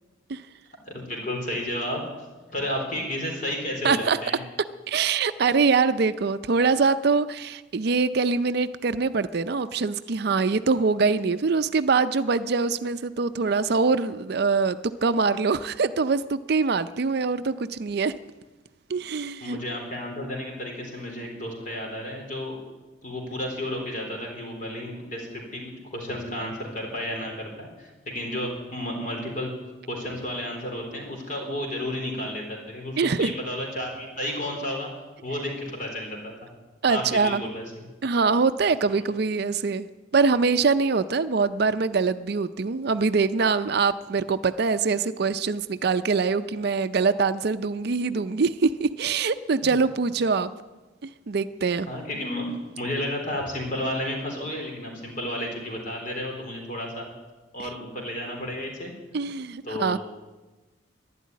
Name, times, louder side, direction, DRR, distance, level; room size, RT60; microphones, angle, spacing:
voice 1, 0.8-2.0 2.5-4.4 19.4-22.6 23.0-29.5 29.9-34.9 35.2-36.5 36.9-37.9 38.9-39.0 49.6-49.7 51.9-52.5 52.8-57.1 57.5-58.9 59.6-60.0, left 1 dB, 45° left, 1 dB, 3.8 m, -32 dB
voice 2, 3.8-4.2 4.9-18.1 18.9-19.6 33.0-33.3 36.8-37.5 38.0-39.9 40.1-50.5 51.0-51.9 59.1-60.0, right 4 dB, 55° right, 12 dB, 0.5 m, -24 dB
12.0 x 11.0 x 9.5 m, 1.2 s
head